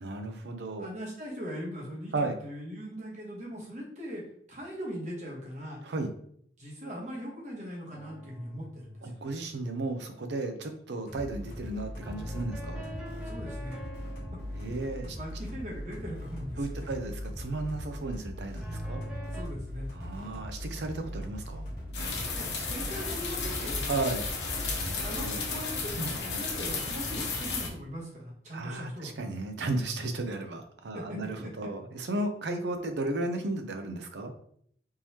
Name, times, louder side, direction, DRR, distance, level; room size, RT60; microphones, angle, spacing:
voice 1, 0.0-0.9 2.1-2.4 5.8-6.1 9.0-12.8 14.5-15.2 16.6-19.0 19.9-21.7 23.9-24.3 24.7-25.4 26.0-26.4 28.5-34.3, right 2 dB, 75° right, 6 dB, 0.5 m, -34 dB
voice 2, 0.8-4.2 4.5-5.8 6.6-9.3 13.1-13.8 14.9-16.9 19.3-19.9 22.3-23.9 25.0-29.2 30.9-31.7, equal, 40° right, -3 dB, 1.1 m, -40 dB
sound 1, 7.9-10.2 12.0-15.9 18.6-19.4, equal, 5° right, 0.8 m, -44 dB
sound 2, 11.1-25.2, equal, 50° left, 1.3 m, -40 dB
sound 3, 21.9-27.7, left 4 dB, 75° left, 0.9 m, -33 dB
3.7 x 3.0 x 2.8 m, 0.65 s
head